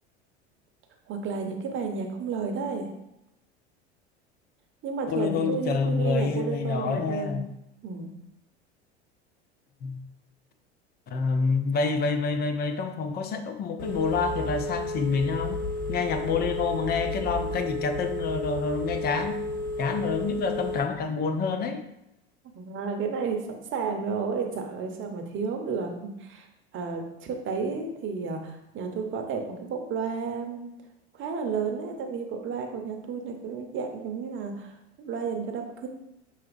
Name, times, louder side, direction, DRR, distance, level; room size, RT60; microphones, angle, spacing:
voice 1, 1.1-2.9 4.8-7.4 7.8-8.1 22.5-26.5 26.7-30.7 31.2-35.9, right 5 dB, 35° right, 3 dB, 0.9 m, -32 dB
voice 2, 5.1-7.5 9.8-10.0 11.1-15.6 15.9-19.4 19.8-21.8, left 5 dB, 30° left, 7 dB, 0.5 m, -27 dB
Telephone, 13.8-20.8, left 1 dB, 65° left, 0.8 m, -32 dB
5.8 x 2.8 x 2.6 m, 0.86 s
hypercardioid pair, 80°, 33 cm